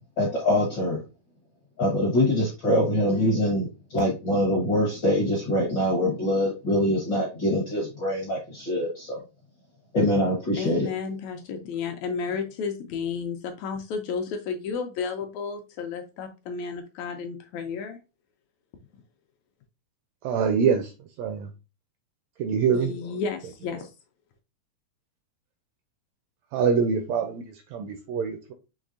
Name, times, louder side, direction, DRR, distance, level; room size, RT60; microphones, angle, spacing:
voice 1, 0.2-1.0 1.8-9.2 9.9-10.9, left 1 dB, 65° left, 1.1 m, -24 dB
voice 2, 10.6-18.0 22.7-23.9, left 5 dB, 80° left, 1.7 m, -32 dB
voice 3, 20.2-20.9 21.2-21.5 22.4-22.9 26.5-28.5, right 6 dB, 80° right, 1.5 m, -25 dB
6.2 x 3.0 x 2.5 m
omnidirectional pair, 3.5 m